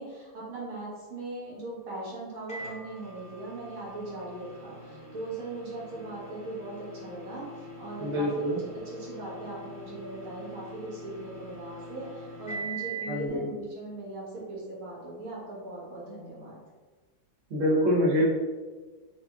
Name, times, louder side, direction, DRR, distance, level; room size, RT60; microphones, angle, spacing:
voice 1, 0.0-7.5 7.8-16.6, right 2 dB, 80° right, -7 dB, 2.1 m, -39 dB
Microwave oven, 2.5-13.2, right 2 dB, 10° left, 0.3 m, -43 dB
voice 2, 8.0-8.6 13.1-13.4 17.5-18.2, equal, 50° right, -5 dB, 0.9 m, -25 dB
4.8 x 2.8 x 2.4 m, 1.3 s
omnidirectional pair, 2.3 m